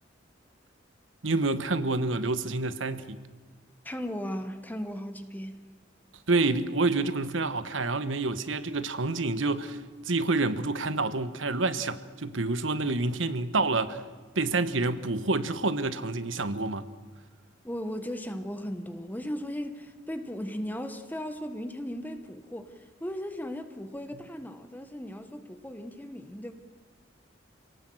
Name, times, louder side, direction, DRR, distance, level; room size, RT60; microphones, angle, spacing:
voice 1, 1.2-3.2 6.3-14.0 14.3-16.9, right 3 dB, 80° right, 1.2 m, -28 dB
voice 2, 3.8-5.7 17.6-26.5, equal, 10° left, 1.2 m, -37 dB
27.5 x 18.0 x 7.8 m
head